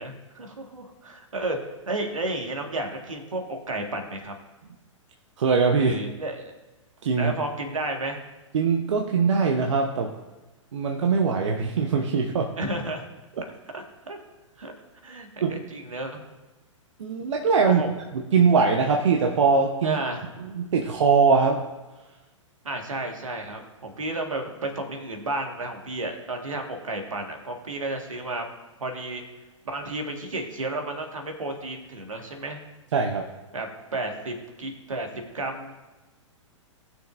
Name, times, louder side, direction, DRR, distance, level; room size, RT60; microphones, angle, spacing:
voice 1, 0.0-1.6 1.9-4.3 5.8-6.5 7.2-8.2 12.6-13.1 13.7-14.2 14.6-14.7 15.0-16.2 17.6-17.9 19.8-20.2 22.6-28.4 28.8-29.2 29.6-32.6 33.5-33.7 33.9-35.7, right 2 dB, 85° right, 3 dB, 1.8 m, -32 dB
voice 2, 5.4-6.0 7.0-7.3 8.5-10.1 10.7-12.5 13.4-13.5 15.4-15.6 17.0-17.8 18.1-20.0 20.4-21.6 32.9-33.3, right 5 dB, 65° right, 2 dB, 0.9 m, -22 dB
18.5 x 6.3 x 2.6 m, 1.1 s
hypercardioid pair, 115°, 16 cm